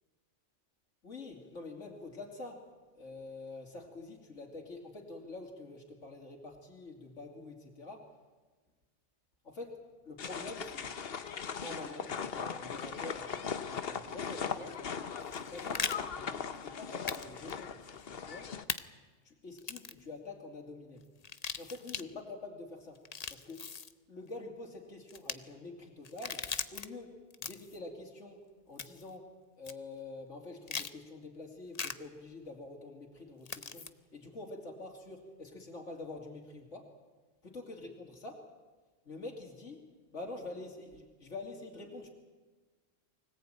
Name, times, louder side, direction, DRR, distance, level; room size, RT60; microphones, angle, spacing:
voice 1, 1.0-2.7 2.9-8.1 9.4-10.9 11.6-14.8 15.2-18.5 19.2-21.1 21.6-23.0 23.3-23.6 24.1-29.3 29.6-36.9 37.4-38.5 39.0-42.1, left 2 dB, 75° left, 0 dB, 3.2 m, -46 dB
sound 1, 10.2-18.6, left 6 dB, 55° left, 1.1 m, -39 dB
sound 2, 15.2-16.0 17.1-17.2 17.5-17.6 18.7-18.8 19.6-20.0 21.2-22.0 22.9-23.9 25.1-25.3 26.0-26.9 27.3-27.8 28.8-29.1 29.6-29.7 30.7-30.9 31.7-31.9 33.4-33.9, left 5 dB, 35° left, 0.8 m, -38 dB
24.5 x 18.0 x 8.9 m, 1.3 s
omnidirectional pair, 1.3 m